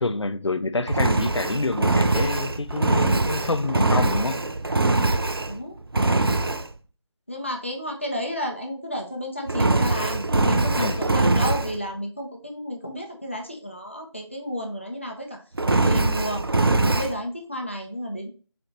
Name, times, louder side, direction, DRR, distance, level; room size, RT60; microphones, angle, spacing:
voice 1, 0.0-4.4 10.8-11.0, left 3 dB, 65° left, 0.5 m, -27 dB
Engine, 0.9-5.6 5.9-6.7 9.5-11.8 15.6-17.1, right 2 dB, 50° right, 0.4 m, -22 dB
voice 2, 7.3-15.4 15.7-16.4 16.8-18.3, equal, 25° left, 0.7 m, -32 dB
4.1 x 4.1 x 3.0 m
figure-of-eight pair, 180°, 16 cm